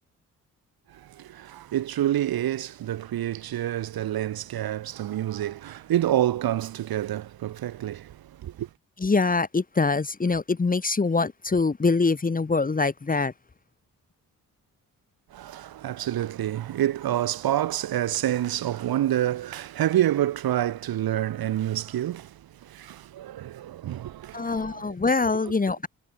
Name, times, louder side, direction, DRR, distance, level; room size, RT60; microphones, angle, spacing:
voice 1, 0.9-8.7 15.3-25.0, right 12 dB, 85° right, 4.3 m, -28 dB
voice 2, 9.0-13.3 24.3-25.9, left 4 dB, 25° left, 1.1 m, -24 dB
cardioid pair, 65°, 35 cm